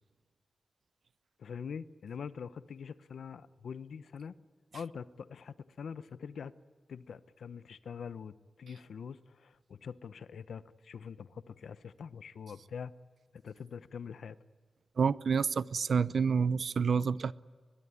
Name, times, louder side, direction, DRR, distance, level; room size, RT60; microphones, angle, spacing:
voice 1, 1.4-4.4 4.7-6.5 6.9-12.9 13.3-14.4, left 6 dB, 90° left, 0.9 m, -44 dB
voice 2, 15.0-17.3, right 6 dB, 65° right, 0.7 m, -28 dB
22.0 x 22.0 x 9.8 m
wide cardioid pair, 120°, 0 cm